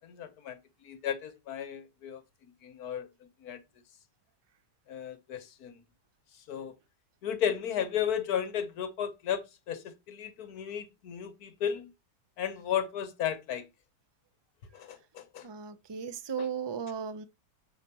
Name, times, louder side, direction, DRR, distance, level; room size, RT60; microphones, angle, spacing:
voice 1, 0.0-2.2 2.6-3.1 3.4-3.6 4.9-5.8 6.5-6.7 7.2-11.9 12.4-13.7 14.7-15.5 16.4-16.5, left 9 dB, 65° left, 1.4 m, -34 dB
voice 2, 15.4-17.2, right 7 dB, 45° right, 0.3 m, -36 dB
7.0 x 6.7 x 2.9 m
omnidirectional pair, 1.8 m